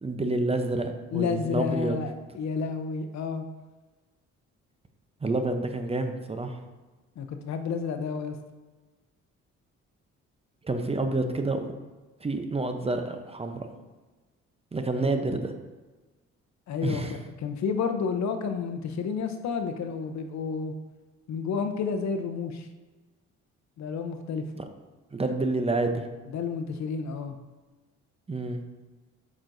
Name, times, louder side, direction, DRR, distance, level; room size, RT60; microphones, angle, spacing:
voice 1, 0.0-2.0 5.2-6.6 10.6-11.7 12.2-13.7 14.7-15.5 16.8-17.2 24.5-24.6 25.1-26.1 28.3-28.6, right 2 dB, 20° right, 6 dB, 0.7 m, -28 dB
voice 2, 1.1-3.4 7.2-8.4 14.9-15.2 16.7-20.7 21.3-22.7 23.8-24.4 26.3-27.4, left 5 dB, 65° left, 6 dB, 0.7 m, -30 dB
8.5 x 6.0 x 2.6 m, 1.2 s
cardioid pair, 90°, 30 cm